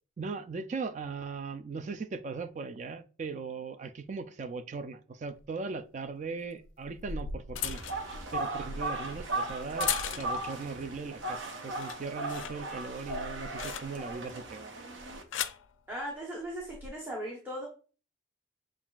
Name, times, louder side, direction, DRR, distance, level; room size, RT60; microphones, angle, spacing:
voice 1, 0.2-7.8 8.3-14.7, right 4 dB, 40° right, 0.3 m, -39 dB
sound 1, 5.4-5.5 6.6-10.6 11.0-11.4 11.7-14.2 15.0-15.7 16.6-16.9, left 8 dB, 80° left, 0.4 m, -38 dB
sound 2, 7.6-15.2, right 2 dB, 75° right, 0.8 m, -37 dB
voice 2, 15.9-17.7, equal, 10° right, 0.9 m, -38 dB
7.2 x 2.4 x 2.3 m
head